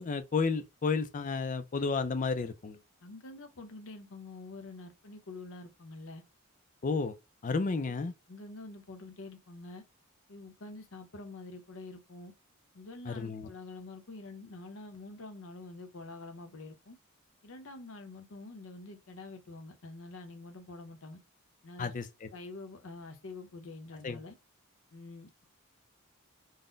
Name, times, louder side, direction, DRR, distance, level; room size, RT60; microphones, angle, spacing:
voice 1, 0.0-2.8 6.8-7.1 7.4-8.1 13.1-13.5 21.8-22.3 24.0-24.2, left 4 dB, 35° left, 0.4 m, -32 dB
voice 2, 3.0-6.2 8.3-9.8 10.3-12.3 12.7-17.0 17.4-21.2 21.6-21.9 22.3-24.4 24.9-25.5, left 2 dB, 65° left, 0.8 m, -46 dB
4.0 x 2.1 x 3.7 m
head